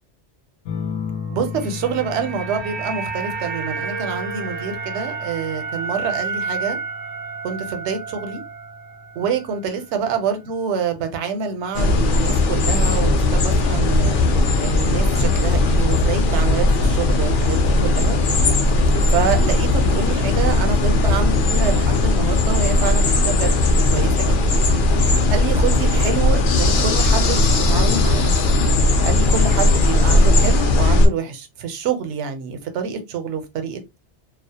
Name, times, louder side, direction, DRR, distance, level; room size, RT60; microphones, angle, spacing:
sound 1, 0.7-9.7 11.2-11.7, left 6 dB, 80° left, 0.9 m, -36 dB
sound 2, 1.3-9.6 9.9-10.1, right 5 dB, 60° right, 0.5 m, -31 dB
voice 1, 1.3-6.8 7.4-8.4 9.2-14.2 14.6-18.2 19.1-23.6 23.9-24.6 25.3-28.3 29.0-34.0, right 6 dB, 75° right, 0.9 m, -26 dB
sound 3, 11.7-31.1, left 2 dB, 60° left, 0.6 m, -17 dB
2.3 x 2.0 x 2.7 m
omnidirectional pair, 1.2 m